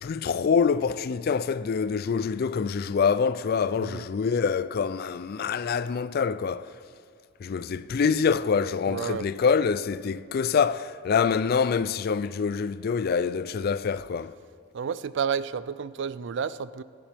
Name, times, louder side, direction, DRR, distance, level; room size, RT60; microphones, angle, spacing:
voice 1, 0.0-6.7 7.4-14.3, left 6 dB, 45° left, 0.3 m, -25 dB
voice 2, 8.9-9.3 14.7-16.8, right 7 dB, 55° right, 0.3 m, -31 dB
24.0 x 10.0 x 3.5 m
head